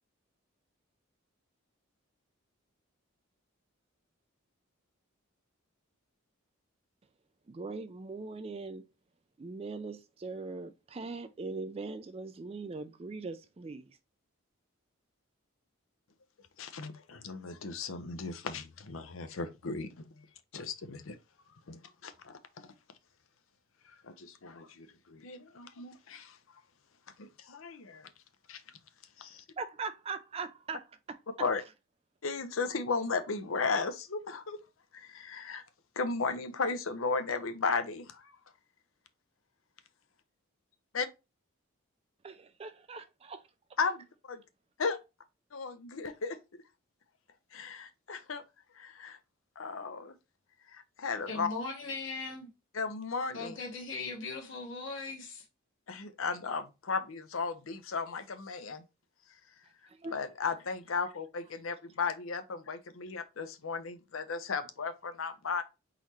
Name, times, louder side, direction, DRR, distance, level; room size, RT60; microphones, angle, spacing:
voice 1, 7.5-8.9 9.4-14.0 29.6-31.5 42.2-43.5 59.9-60.1, right 4 dB, 30° right, 0.3 m, -41 dB
voice 2, 16.6-20.2 20.5-21.2 21.7-22.7 24.0-26.4 27.2-28.1 28.5-28.6 29.2-29.4 31.4-31.6 32.2-34.6 34.9-35.6 36.0-38.3 40.9-41.1 43.8-44.4 44.8-45.0 45.5-46.4 47.5-48.4 48.8-49.2 49.6-50.1 50.7-51.5 52.7-53.6 55.9-58.8 60.1-65.6, left 4 dB, 75° left, 0.7 m, -35 dB
voice 3, 51.3-52.5 53.3-55.4, left 3 dB, 60° left, 1.4 m, -39 dB
4.1 x 4.0 x 3.0 m
head